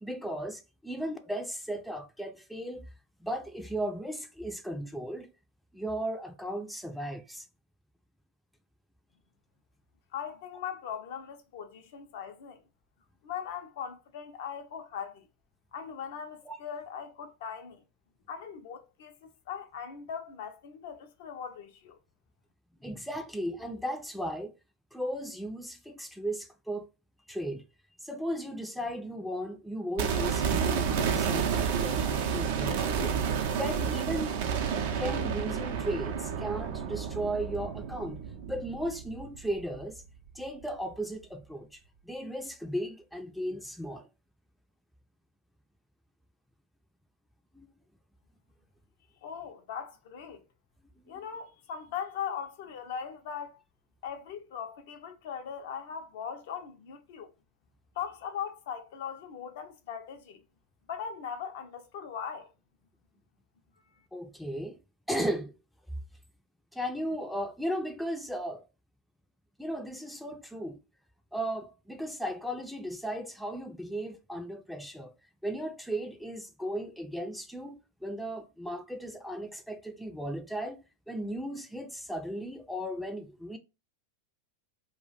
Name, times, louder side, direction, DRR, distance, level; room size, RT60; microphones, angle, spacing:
voice 1, 0.0-2.9 3.2-5.3 5.7-7.5 16.5-16.6 22.8-24.5 24.9-26.9 27.3-27.6 28.0-34.4 35.0-38.2 38.5-40.0 40.3-44.1 47.5-47.7 51.0-51.2 64.1-64.8 65.1-65.5 66.7-68.6 69.6-70.8 71.3-75.1 75.4-83.6, equal, ahead, 0.4 m, -36 dB
voice 2, 10.1-12.6 13.2-15.3 15.7-17.8 18.3-22.0 49.2-50.4 51.1-53.6 54.0-57.3 58.0-60.4 60.9-62.5, left 7 dB, 60° left, 0.5 m, -39 dB
sound 1, 30.0-40.0 40.3-40.4, right 7 dB, 60° right, 0.5 m, -30 dB
2.3 x 2.1 x 3.9 m
hypercardioid pair, 90°, 0 cm